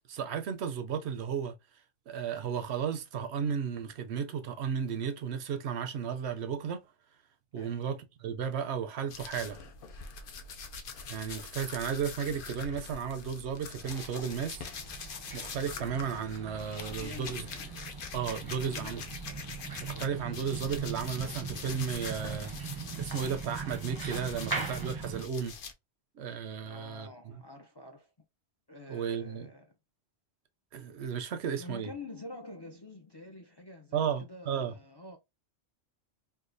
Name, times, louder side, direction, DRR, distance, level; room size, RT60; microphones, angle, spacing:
voice 1, 0.1-1.5 2.1-6.8 7.5-9.6 11.1-14.7 15.3-17.5 18.1-19.0 19.8-25.5 26.2-27.4 28.9-29.5 30.7-31.9 33.9-34.7, right 7 dB, 75° right, 0.8 m, -34 dB
sound 1, 9.1-20.0 20.3-25.7, left 5 dB, 60° left, 0.7 m, -43 dB
sound 2, 13.8-25.2, right 5 dB, 25° right, 0.5 m, -41 dB
voice 2, 16.8-17.7 18.4-19.2 26.6-28.1 28.7-29.7 31.6-35.2, left 2 dB, 35° left, 0.4 m, -47 dB
4.6 x 2.3 x 2.5 m
omnidirectional pair, 1.1 m